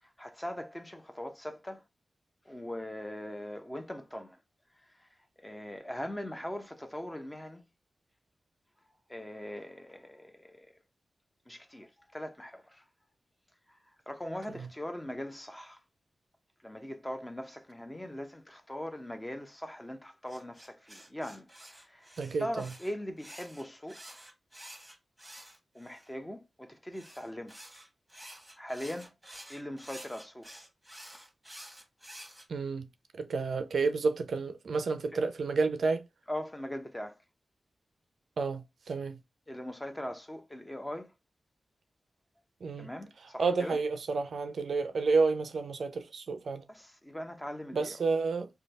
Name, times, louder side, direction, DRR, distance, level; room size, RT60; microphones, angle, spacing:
voice 1, 0.0-1.8 2.4-4.4 4.7-7.6 8.8-10.8 11.5-12.9 13.7-15.8 16.6-24.2 25.7-27.5 28.6-29.1 29.5-30.5 35.1-35.2 36.3-37.2 39.5-41.1 42.8-43.8 46.7-48.0, left 1 dB, 20° left, 0.7 m, -41 dB
sound 1, 20.3-26.1 26.9-32.5, right 1 dB, 10° right, 1.2 m, -50 dB
voice 2, 22.2-22.7 32.5-32.9 33.2-36.0 38.4-39.2 42.6-42.9 43.4-46.6 47.7-48.5, right 4 dB, 75° right, 0.4 m, -30 dB
3.1 x 2.2 x 4.0 m
cardioid pair, 40°, 0 cm